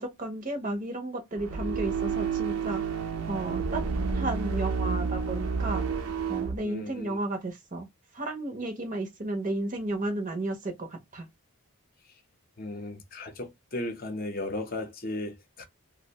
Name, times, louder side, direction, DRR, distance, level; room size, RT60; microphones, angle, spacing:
voice 1, 0.0-2.8 3.3-3.8 4.1-5.8 6.3-7.9 8.1-11.3, right 2 dB, 35° right, 0.6 m, -33 dB
sound 1, 1.3-6.6, right 5 dB, 85° right, 0.6 m, -30 dB
voice 2, 6.6-7.2 12.0-12.2 12.6-15.6, left 2 dB, 40° left, 0.6 m, -36 dB
2.5 x 2.0 x 2.8 m
head